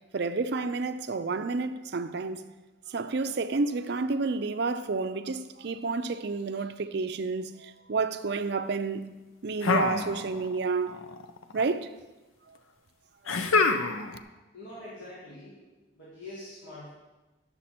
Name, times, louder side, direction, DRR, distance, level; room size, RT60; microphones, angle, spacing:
voice 1, 0.1-2.4 2.9-9.1 9.4-11.0 11.5-11.9, right 4 dB, 55° right, 0.5 m, -30 dB
sound 1, 9.6-10.6 10.9-11.6 13.3-14.2, left 4 dB, 85° left, 0.6 m, -26 dB
voice 2, 14.5-15.6 15.9-16.9, left 1 dB, 65° left, 2.1 m, -44 dB
9.9 x 6.9 x 4.3 m
head